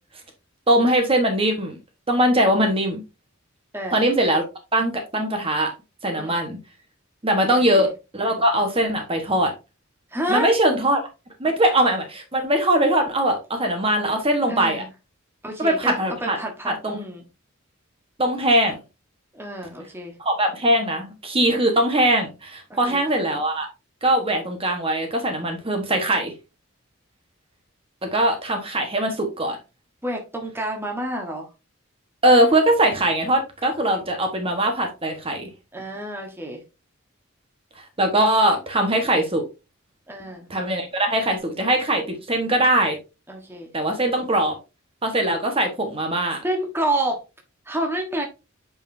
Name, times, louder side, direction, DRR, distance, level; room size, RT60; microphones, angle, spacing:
voice 1, 0.7-1.8 2.1-3.0 3.9-4.4 4.7-5.7 6.0-6.6 7.2-9.5 10.3-11.0 11.4-14.8 15.6-16.4 16.6-17.0 18.2-18.8 20.2-23.7 24.0-26.3 28.0-29.6 32.2-35.5 37.8-39.4 40.5-43.0 43.7-44.6 45.0-46.4, right 1 dB, 30° right, 4 dB, 1.3 m, -21 dB
voice 2, 10.1-10.5 14.5-14.9 15.4-15.9 16.2-17.2 19.3-20.1 22.7-23.0 30.0-31.5 35.7-36.6 40.1-40.5 43.3-43.7 46.4-47.2 47.7-48.2, right 1 dB, 10° right, 2 dB, 1.3 m, -29 dB
8.8 x 5.0 x 2.7 m, 0.28 s
head